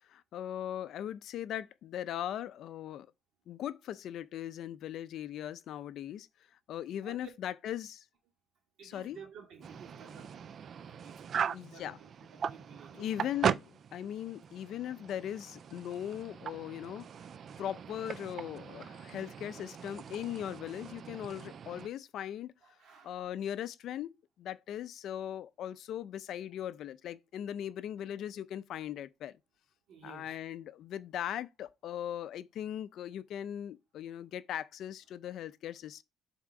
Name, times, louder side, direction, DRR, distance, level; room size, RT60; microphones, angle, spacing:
voice 1, 0.1-3.1 3.5-6.3 6.7-8.0 8.8-9.2 11.5-12.0 12.9-17.1 17.6-22.5 23.0-29.4 30.0-36.0, left 10 dB, 55° left, 0.5 m, -39 dB
voice 2, 8.8-13.1 22.6-23.2 29.9-30.4, right 6 dB, 55° right, 2.4 m, -53 dB
sound 1, 9.6-21.9, right 7 dB, 35° right, 0.3 m, -39 dB
7.5 x 3.6 x 4.7 m
cardioid pair, 170°, 0 cm